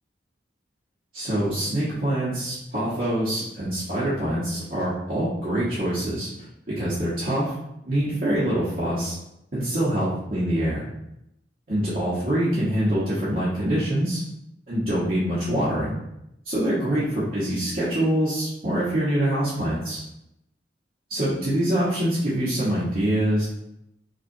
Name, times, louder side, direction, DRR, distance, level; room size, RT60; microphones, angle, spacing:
voice 1, 1.1-6.3 6.8-7.5 7.8-9.1 9.5-10.8 11.7-14.2 14.7-15.9 16.4-20.0 21.1-23.4, right 1 dB, 50° right, -11 dB, 1.0 m, -25 dB
5.1 x 2.4 x 2.6 m, 0.83 s
head